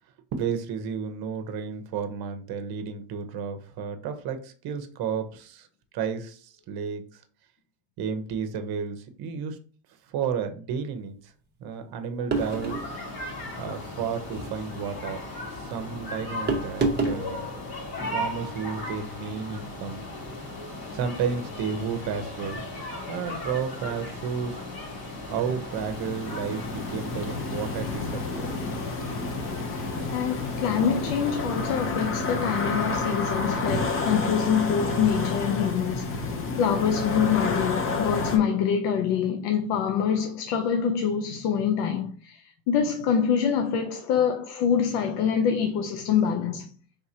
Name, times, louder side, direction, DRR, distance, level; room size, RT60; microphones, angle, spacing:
voice 1, 0.3-5.7 5.9-7.2 8.0-9.6 10.1-11.3 11.6-12.8 13.6-15.2 15.5-17.5 18.1-20.0 20.9-22.6 23.1-24.6 25.3-28.4, right 6 dB, 50° right, 0.8 m, -32 dB
sound 1, 12.3-31.8, left 1 dB, 45° left, 1.7 m, -37 dB
sound 2, 12.3-12.9 14.2-14.5 16.5-17.2, right 3 dB, 20° right, 0.8 m, -27 dB
sound 3, 25.7-38.4, left 3 dB, 25° left, 0.8 m, -30 dB
voice 2, 30.1-46.7, left 7 dB, 80° left, 0.7 m, -25 dB
4.6 x 3.5 x 2.8 m
cardioid pair, 125°, 48 cm